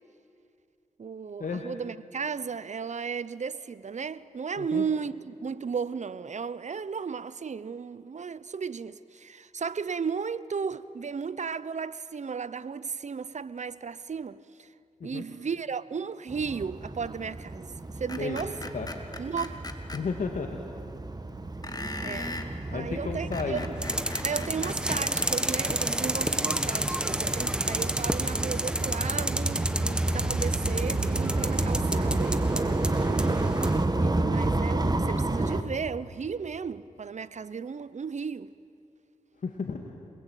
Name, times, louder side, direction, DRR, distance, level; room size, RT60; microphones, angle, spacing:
voice 1, 1.0-14.7 15.0-18.5 19.2-19.6 22.0-22.4 22.7-23.7 24.2-32.8 34.0-38.5, right 6 dB, 60° right, 0.9 m, -35 dB
sound 1, 16.3-35.6, right 2 dB, 30° right, 1.8 m, -30 dB
Screech, 18.1-20.0 21.6-22.5 23.1-25.3, left 2 dB, 30° left, 2.5 m, -38 dB
voice 2, 19.9-20.6 22.7-23.6 39.4-39.8, left 5 dB, 75° left, 2.1 m, -32 dB
sound 2, 23.8-33.8, right 1 dB, 5° right, 1.6 m, -31 dB
27.5 x 20.5 x 9.2 m
cardioid pair, 55°, 14 cm